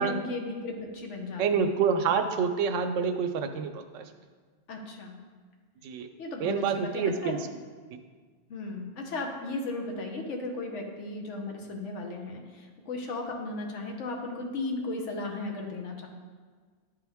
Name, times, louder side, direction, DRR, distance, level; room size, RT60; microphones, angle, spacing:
voice 1, 0.0-1.7 4.7-5.2 6.2-7.4 8.5-16.1, left 2 dB, 75° left, 2 dB, 1.2 m, -36 dB
voice 2, 1.4-4.0 5.8-6.1 6.4-7.4, right 6 dB, 90° right, 8 dB, 0.9 m, -27 dB
10.5 x 3.6 x 3.5 m, 1.5 s
omnidirectional pair, 1.2 m